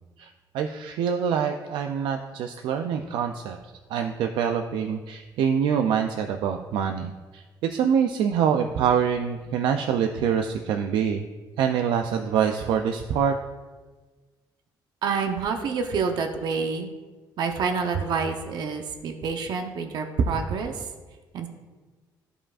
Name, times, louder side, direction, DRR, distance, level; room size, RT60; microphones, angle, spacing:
voice 1, 0.5-3.6 3.9-11.2 11.6-13.4, right 7 dB, 85° right, 5 dB, 0.4 m, -25 dB
voice 2, 15.0-16.9 17.4-20.8 21.3-21.5, right 5 dB, 65° right, 5 dB, 0.8 m, -27 dB
13.5 x 4.9 x 2.5 m, 1.3 s
cardioid pair, 115°, 8 cm